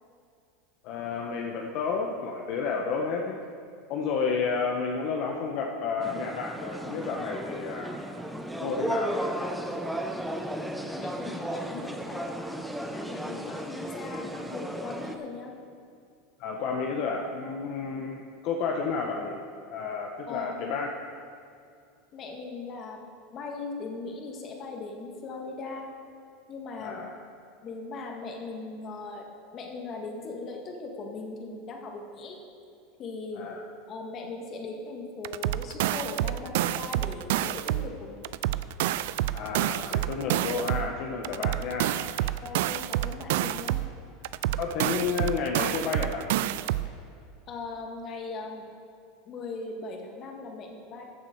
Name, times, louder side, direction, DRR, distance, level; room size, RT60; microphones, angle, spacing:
voice 1, 0.8-3.4 3.9-8.0 8.6-9.5 13.4-13.6 16.4-19.4 19.7-20.9 26.8-27.2 33.4-33.6 39.3-42.3 44.6-46.3, left 5 dB, 55° left, 0 dB, 1.0 m, -31 dB
sound 1, 6.0-15.2, right 1 dB, ahead, 0.7 m, -34 dB
voice 2, 10.9-12.3 12.9-15.5 20.3-20.8 22.1-23.0 23.3-25.9 26.5-27.0 27.6-29.3 29.5-32.4 33.0-33.5 33.9-38.3 42.4-43.8 47.5-48.6 49.3-51.0, left 3 dB, 35° left, 2 dB, 1.8 m, -39 dB
sound 2, 35.2-37.9 38.2-40.9 41.2-43.9 44.2-46.9, right 14 dB, 75° right, 0.3 m, -28 dB
14.5 x 7.5 x 4.6 m, 2.4 s
supercardioid pair, 135°, 0 cm